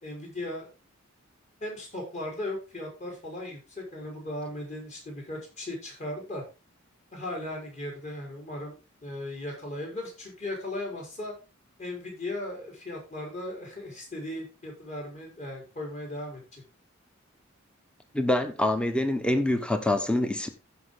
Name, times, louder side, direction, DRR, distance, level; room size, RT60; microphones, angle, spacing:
voice 1, 0.0-0.7 1.6-6.4 7.1-11.3 11.8-16.6, left 1 dB, 35° left, 4.6 m, -37 dB
voice 2, 18.1-20.5, left 1 dB, 5° left, 1.0 m, -25 dB
15.0 x 5.5 x 3.8 m
head